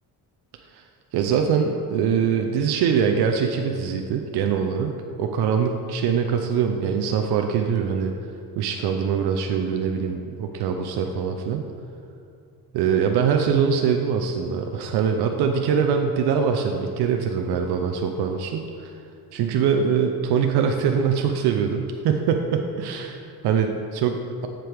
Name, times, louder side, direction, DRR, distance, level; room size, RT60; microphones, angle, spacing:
voice 1, 1.1-8.1 8.6-11.7 12.7-18.9 19.3-24.5, right 7 dB, 85° right, 4 dB, 0.6 m, -23 dB
7.7 x 7.5 x 3.4 m, 2.4 s
cardioid pair, 130°, 38 cm